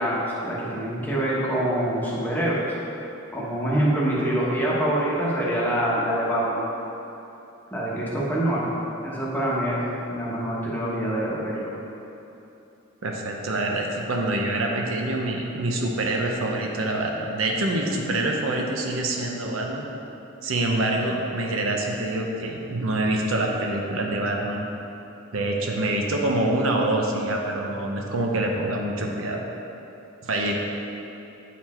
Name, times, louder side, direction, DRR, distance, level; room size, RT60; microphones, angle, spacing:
voice 1, 0.0-2.7 3.3-6.6 7.7-8.7 9.0-11.6, right 1 dB, 10° left, -7 dB, 1.1 m, -25 dB
voice 2, 13.0-19.9 20.4-24.6 25.3-29.4 30.2-30.5, right 1 dB, 75° right, 0 dB, 0.8 m, -26 dB
8.9 x 4.2 x 4.3 m, 2.9 s
head